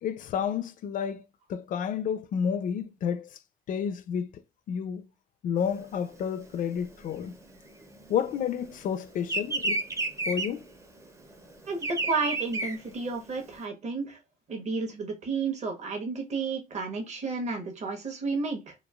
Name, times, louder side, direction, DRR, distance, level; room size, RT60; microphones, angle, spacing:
voice 1, 0.0-1.2 1.5-3.3 3.7-4.3 4.7-5.1 5.4-7.3 8.1-9.8 10.3-10.7, left 8 dB, 50° left, 0.4 m, -30 dB
Bird vocalization bird call bird song, 5.7-8.6 8.8-13.6, right 2 dB, 15° right, 0.5 m, -32 dB
voice 2, 11.6-14.2 14.5-18.7, right 4 dB, 40° right, 1.0 m, -32 dB
3.1 x 2.3 x 2.3 m
cardioid pair, 110°, 17 cm